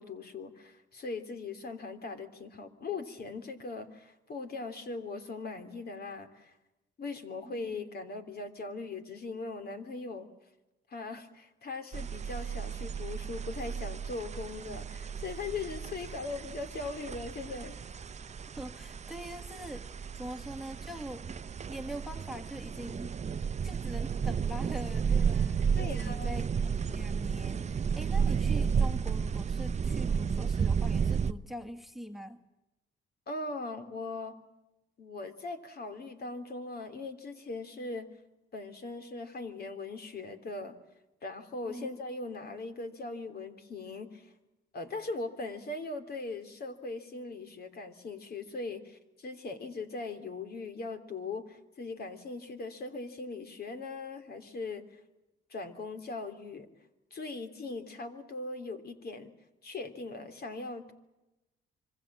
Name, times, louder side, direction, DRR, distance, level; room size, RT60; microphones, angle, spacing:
voice 1, 0.0-6.5 7.0-10.3 10.9-17.8 25.7-26.4 33.3-34.4 35.0-38.1 38.5-40.8 41.2-44.3 44.7-54.8 55.5-56.7 57.1-59.3 59.6-60.9, left 3 dB, 50° left, 8 dB, 3.3 m, -40 dB
sound 1, 11.9-31.3, right 6 dB, 35° right, 0.8 m, -32 dB
voice 2, 18.5-19.9 20.1-21.3 21.7-23.2 23.6-32.4 41.6-41.9, equal, ahead, 5 dB, 1.8 m, -43 dB
26.0 x 24.0 x 7.5 m, 0.98 s
cardioid pair, 90°, 20 cm